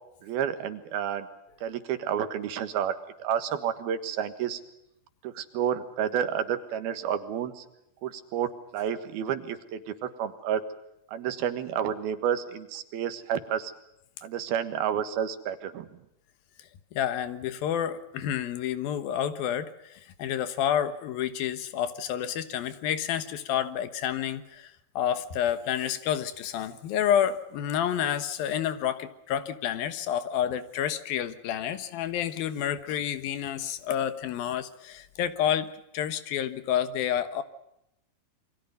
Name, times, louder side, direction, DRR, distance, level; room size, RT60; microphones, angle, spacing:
voice 1, 0.2-1.3 1.6-4.6 5.2-7.7 8.0-10.6 11.1-13.7 14.2-16.0, right 9 dB, 85° right, 10 dB, 3.5 m, -30 dB
voice 2, 16.9-37.4, left 9 dB, 80° left, 11 dB, 3.1 m, -29 dB
28.0 x 24.0 x 5.3 m, 0.81 s
omnidirectional pair, 4.2 m